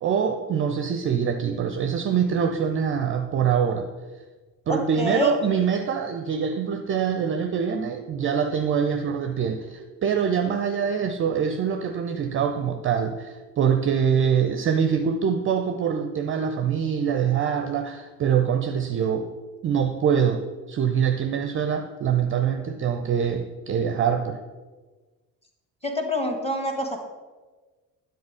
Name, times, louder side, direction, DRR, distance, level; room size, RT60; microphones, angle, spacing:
voice 1, 0.0-3.9 4.7-19.3 19.6-24.4, right 7 dB, 30° right, 0.4 m, -24 dB
voice 2, 4.7-5.4 25.8-27.0, left 1 dB, 15° left, 1.2 m, -27 dB
9.5 x 3.9 x 4.9 m
figure-of-eight pair, 50°, 48 cm